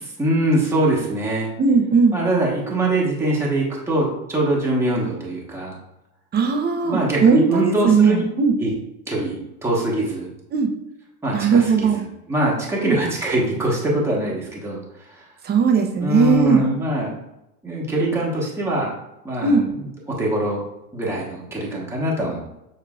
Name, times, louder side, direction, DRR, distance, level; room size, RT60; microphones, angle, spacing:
voice 1, 0.2-1.5 2.1-5.7 6.8-8.2 8.6-8.7 9.1-10.3 11.2-14.8 15.1-15.3 16.0-17.1 17.6-18.9 19.2-19.9 20.2-20.6 20.9-22.5, right 1 dB, 5° right, -4 dB, 1.3 m, -23 dB
voice 2, 1.6-2.2 6.3-8.5 10.5-10.7 11.3-12.0 12.8-13.0 15.4-16.6 19.4-19.7, right 5 dB, 20° right, 3 dB, 0.8 m, -18 dB
6.9 x 3.2 x 2.4 m, 0.89 s
hypercardioid pair, 110°, 46 cm